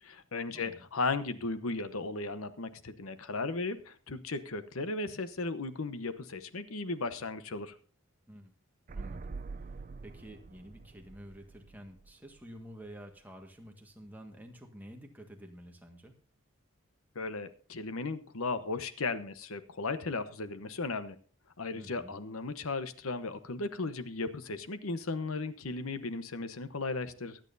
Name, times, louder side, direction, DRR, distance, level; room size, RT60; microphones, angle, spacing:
voice 1, 0.0-7.7 17.1-21.2 21.6-27.4, left 3 dB, 90° left, 12 dB, 1.0 m, -36 dB
voice 2, 0.5-0.8 8.3-8.5 8.9-9.3 10.0-16.1 21.7-22.2, equal, 10° right, 2 dB, 1.6 m, -50 dB
sound 1, 8.9-12.6 12.9-13.0, right 4 dB, 40° right, 0.5 m, -45 dB
23.5 x 9.0 x 2.7 m, 0.41 s
head